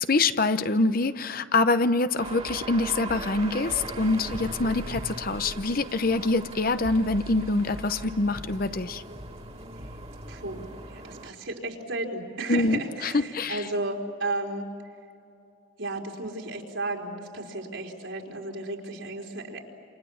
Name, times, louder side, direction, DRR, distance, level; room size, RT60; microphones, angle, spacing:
voice 1, 0.0-9.0 12.5-13.7, left 3 dB, 50° left, 11 dB, 0.9 m, -25 dB
sound 1, 2.2-11.3, right 2 dB, 35° right, 2.2 m, -39 dB
voice 2, 10.3-14.7 15.8-19.6, right 2 dB, 75° right, -1 dB, 4.5 m, -33 dB
29.0 x 28.0 x 7.2 m, 2.6 s
head